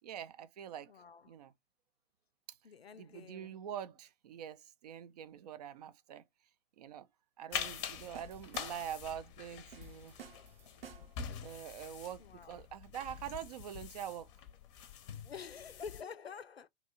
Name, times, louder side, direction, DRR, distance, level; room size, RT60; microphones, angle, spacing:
voice 1, 0.0-0.9 1.3-1.5 2.5-2.6 3.0-6.2 6.8-7.1 7.4-10.2 11.4-14.3, right 9 dB, 45° right, 0.4 m, -45 dB
voice 2, 0.9-1.4 2.6-3.7 12.2-12.6 15.2-16.7, left 6 dB, 85° left, 0.5 m, -48 dB
sound 1, 7.5-16.0, left 8 dB, 30° left, 0.6 m, -45 dB
sound 2, 7.9-9.1 9.7-11.3, right 8 dB, 70° right, 0.7 m, -54 dB
2.8 x 2.2 x 3.9 m
figure-of-eight pair, 110°, 30 cm